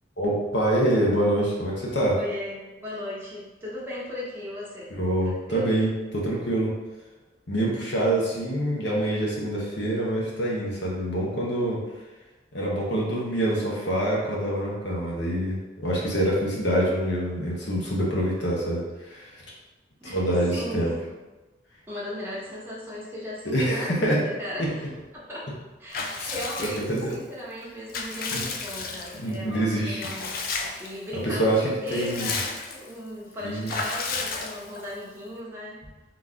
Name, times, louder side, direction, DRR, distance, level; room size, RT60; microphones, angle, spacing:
voice 1, 0.2-2.2 4.9-6.7 7.5-11.8 12.5-15.6 15.8-19.3 20.0-20.9 23.5-24.2 24.6-24.7 26.1-26.3 26.6-27.1 28.3-28.4 29.2-30.0 31.2-32.3 33.4-33.7, right 1 dB, 70° left, -4 dB, 1.2 m, -25 dB
voice 2, 2.1-4.9 5.2-5.7 20.0-21.1 21.9-24.9 25.1-25.5 25.8-30.3 30.8-35.8, left 1 dB, 10° right, -6 dB, 1.0 m, -37 dB
Water / Bathtub (filling or washing) / Liquid, 25.9-27.2 27.6-29.3 30.0-30.9 31.3-31.4 31.7-32.9 33.7-34.9, left 4 dB, 50° left, 0.4 m, -33 dB
4.0 x 3.1 x 3.7 m, 1.1 s
head